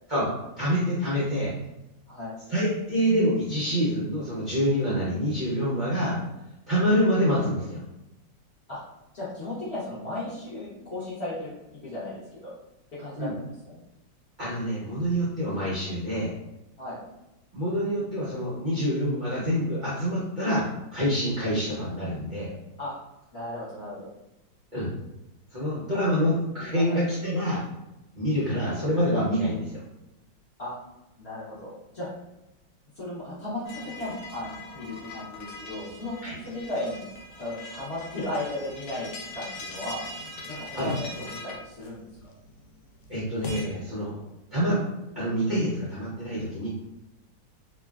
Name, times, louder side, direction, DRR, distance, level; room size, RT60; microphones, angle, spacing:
voice 1, 0.6-1.5 2.5-6.2 6.7-7.8 13.2-13.3 14.4-16.3 17.5-20.6 20.9-22.5 24.7-24.9 25.5-27.6 28.1-29.7 36.2-36.3 40.7-40.9 43.1-44.2 44.5-44.8 45.2-46.7, equal, 70° right, -8 dB, 0.4 m, -26 dB
voice 2, 9.1-11.5 11.8-12.5 12.9-13.3 13.6-13.8 16.8-17.0 22.8-22.9 23.3-24.1 25.9-26.0 26.7-27.0 30.6-30.7 31.2-32.1 33.0-37.1 37.4-40.0 40.4-42.3, left 1 dB, 50° left, -9 dB, 0.9 m, -35 dB
sound 1, 33.7-43.7, left 2 dB, 75° left, 1.2 m, -41 dB
3.0 x 2.3 x 2.3 m, 0.93 s
omnidirectional pair, 2.0 m